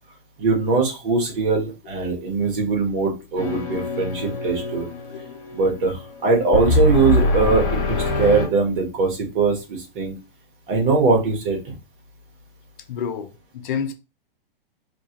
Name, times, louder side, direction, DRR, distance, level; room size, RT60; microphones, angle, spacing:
voice 1, 0.4-4.9 5.5-10.2 10.7-11.7, right 4 dB, 60° right, 1.5 m, -21 dB
sound 1, 3.4-8.5, left 2 dB, 40° left, 1.2 m, -24 dB
voice 2, 5.1-5.4 12.9-13.9, left 7 dB, 55° left, 0.6 m, -29 dB
2.9 x 2.4 x 2.9 m
hypercardioid pair, 130°, 29 cm